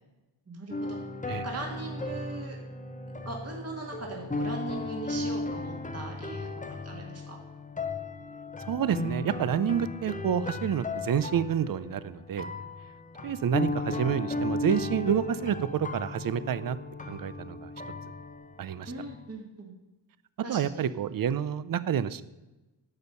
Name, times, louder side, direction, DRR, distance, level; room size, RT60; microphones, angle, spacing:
voice 1, 0.5-1.0 1.4-2.6 3.2-6.5 6.8-7.4 18.9-19.7 20.4-20.8, right 2 dB, 30° right, 0 dB, 1.7 m, -39 dB
sound 1, 0.7-19.3, left 2 dB, 15° left, 0.7 m, -36 dB
voice 2, 8.7-12.5 13.2-16.8 17.1-17.7 18.6-18.9 20.5-22.2, right 8 dB, 45° right, 16 dB, 0.5 m, -28 dB
10.5 x 7.1 x 5.5 m, 1.1 s
wide cardioid pair, 115°, 48 cm